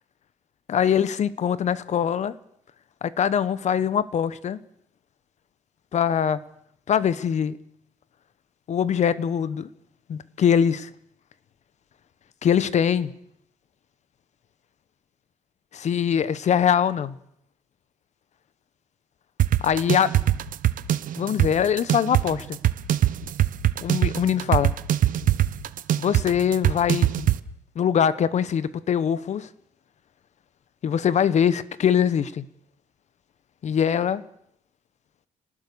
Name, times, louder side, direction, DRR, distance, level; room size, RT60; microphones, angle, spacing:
voice 1, 0.7-2.3 3.0-4.6 5.9-6.4 6.9-7.6 8.7-9.7 10.1-10.9 12.4-13.1 15.7-17.2 19.6-20.1 21.2-22.6 23.8-24.7 26.0-27.3 27.8-29.5 30.8-32.4 33.6-34.2, left 8 dB, 45° left, 1.0 m, -22 dB
sound 1, 19.4-27.4, right 12 dB, 60° right, 1.0 m, -22 dB
28.5 x 19.0 x 6.8 m
cardioid pair, 135°, 16 cm